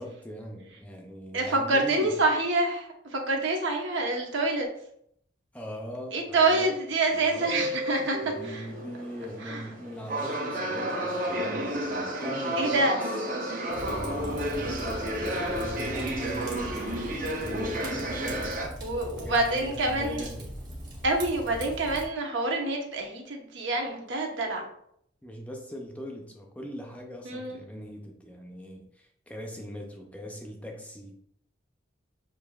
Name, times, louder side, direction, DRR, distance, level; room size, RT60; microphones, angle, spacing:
voice 1, 0.0-2.2 5.5-6.8 7.1-7.5 8.2-13.0 13.4-18.6 19.1-20.5 25.2-31.2, equal, 5° left, 1 dB, 0.4 m, -41 dB
voice 2, 1.3-4.7 6.1-8.6 9.4-9.6 12.6-13.0 18.8-20.3 21.0-24.6 27.2-27.6, right 2 dB, 80° right, 1 dB, 1.0 m, -27 dB
sound 1, 7.1-18.7, right 1 dB, 45° right, 0.8 m, -32 dB
Fire, 13.7-22.0, right 1 dB, 20° right, 1.0 m, -40 dB
6.7 x 2.6 x 2.3 m, 0.69 s
head